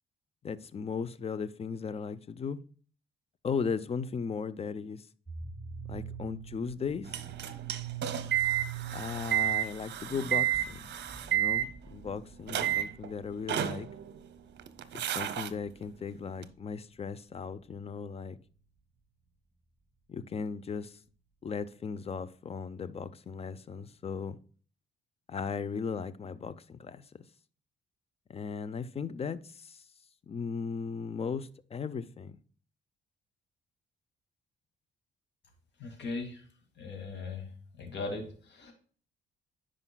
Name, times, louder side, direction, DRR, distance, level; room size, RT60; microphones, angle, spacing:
voice 1, 0.4-2.6 3.4-5.1 5.9-7.2 8.9-10.8 11.3-13.9 14.9-18.4 20.1-21.0 21.4-24.4 25.3-27.0 28.3-29.8 30.3-32.4, left 5 dB, 30° left, 0.5 m, -37 dB
sound 1, 5.3-16.5, right 7 dB, ahead, 1.9 m, -44 dB
sound 2, 7.1-12.1 12.5-13.1 13.5-14.3 14.6-15.5 16.4-16.5, right 11 dB, 60° right, 0.7 m, -31 dB
voice 2, 35.8-36.4 36.8-37.5 37.8-38.7, left 3 dB, 60° left, 2.1 m, -38 dB
9.7 x 5.0 x 2.2 m
cardioid pair, 90°, 20 cm